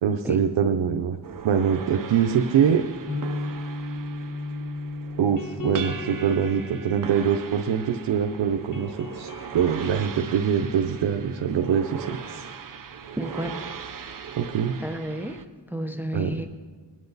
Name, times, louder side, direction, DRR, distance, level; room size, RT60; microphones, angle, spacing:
voice 1, 0.0-1.2 1.4-2.8 5.2-12.4 14.4-14.7 16.1-16.3, right 8 dB, 90° right, 4 dB, 0.7 m, -24 dB
sound 1, 1.2-15.5, right 7 dB, 50° right, 0.7 m, -39 dB
sound 2, 2.4-8.3 8.5-12.0, left 3 dB, 45° left, 1.5 m, -37 dB
voice 2, 13.2-13.7 14.0-14.3 14.8-15.4 15.7-16.5, right 1 dB, 5° right, 8 dB, 0.7 m, -32 dB
21.0 x 9.3 x 4.0 m, 1.5 s
wide cardioid pair, 100°, 43 cm